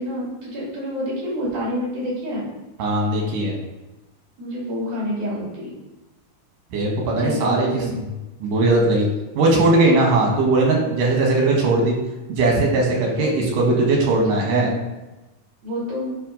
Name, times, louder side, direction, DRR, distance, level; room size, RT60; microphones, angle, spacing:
voice 1, 0.0-2.5 4.4-5.7 7.2-7.9 13.2-13.3 14.5-14.8 15.6-16.1, equal, 70° right, -5 dB, 4.1 m, -28 dB
voice 2, 2.8-3.5 6.7-7.7 8.4-9.1 9.4-11.9 12.3-14.7, right 2 dB, 90° right, -1 dB, 3.1 m, -19 dB
9.9 x 3.4 x 5.3 m, 1.1 s
omnidirectional pair, 3.6 m